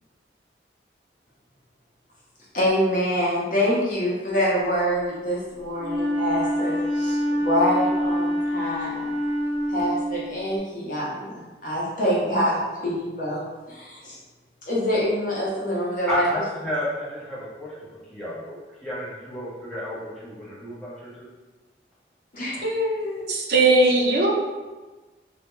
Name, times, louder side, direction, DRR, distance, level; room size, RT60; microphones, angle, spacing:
voice 1, 2.5-9.1 9.7-14.2 14.7-16.2 22.3-23.3, equal, 45° left, -6 dB, 0.7 m, -26 dB
Wind instrument woodwind instrument, 5.8-10.5, equal, 30° right, 1.0 m, -26 dB
voice 2, 16.1-21.3, left 1 dB, 5° left, -9 dB, 0.6 m, -32 dB
voice 3, 23.3-24.3, right 2 dB, 60° right, -1 dB, 0.4 m, -18 dB
2.2 x 2.0 x 2.9 m, 1.2 s
head